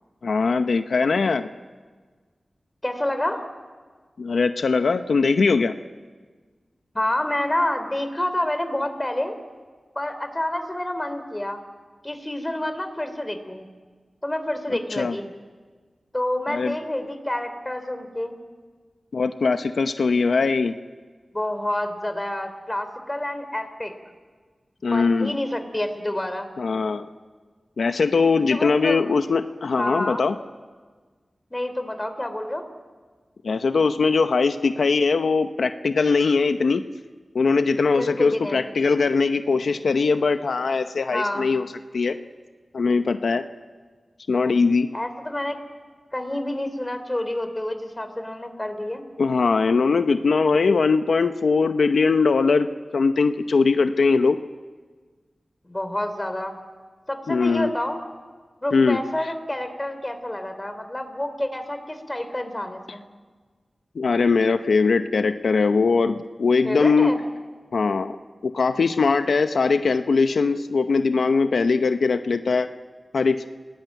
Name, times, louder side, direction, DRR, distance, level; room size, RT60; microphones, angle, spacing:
voice 1, 0.2-1.4 4.2-5.7 15.0-15.1 16.5-16.7 19.1-20.7 24.8-25.3 26.6-27.1 27.8-30.4 33.4-36.8 37.3-41.6 41.9-42.2 42.7-43.4 44.3-44.9 49.2-52.7 52.9-54.4 57.3-57.7 58.7-59.0 64.0-67.1 67.7-68.2 68.4-72.7 73.1-73.4, left 4 dB, 90° left, 8 dB, 0.8 m, -21 dB
voice 2, 2.8-3.4 6.9-9.4 10.0-11.6 12.0-13.7 14.2-15.3 16.1-18.4 21.3-23.9 24.9-26.5 28.5-29.1 29.8-30.3 31.5-32.7 37.9-38.6 41.1-41.5 44.9-45.6 46.1-49.0 55.6-56.6 57.1-58.0 58.6-63.0 66.6-67.2, left 1 dB, 20° left, 8 dB, 3.5 m, -28 dB
29.0 x 19.0 x 9.2 m, 1.5 s
wide cardioid pair, 65°, 0 cm